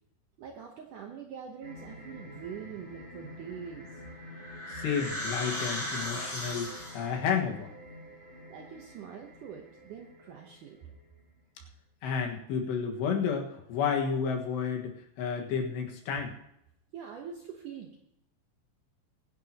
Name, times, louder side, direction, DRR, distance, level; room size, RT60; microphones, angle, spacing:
voice 1, 0.4-4.0 8.5-11.0 16.9-18.0, right 7 dB, 75° right, 2 dB, 1.9 m, -44 dB
sound 1, 1.6-11.4, left 1 dB, 15° right, 3.6 m, -49 dB
sound 2, 3.8-7.2, left 1 dB, 15° left, 5.3 m, -37 dB
voice 2, 4.7-7.7 12.0-16.3, left 6 dB, 80° left, 2 dB, 3.7 m, -31 dB
23.0 x 10.5 x 2.9 m, 0.78 s
omnidirectional pair, 5.0 m